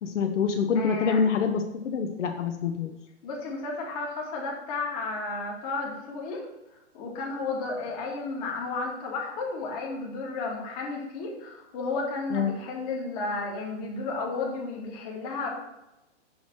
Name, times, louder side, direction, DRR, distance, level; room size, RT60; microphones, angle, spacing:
voice 1, 0.0-2.9 12.3-12.5, left 6 dB, 75° left, 5 dB, 0.8 m, -26 dB
voice 2, 0.7-1.2 3.2-6.4 6.9-15.5, left 3 dB, 30° left, -1 dB, 1.3 m, -33 dB
5.9 x 3.2 x 5.6 m, 0.92 s
hypercardioid pair, 160°, 36 cm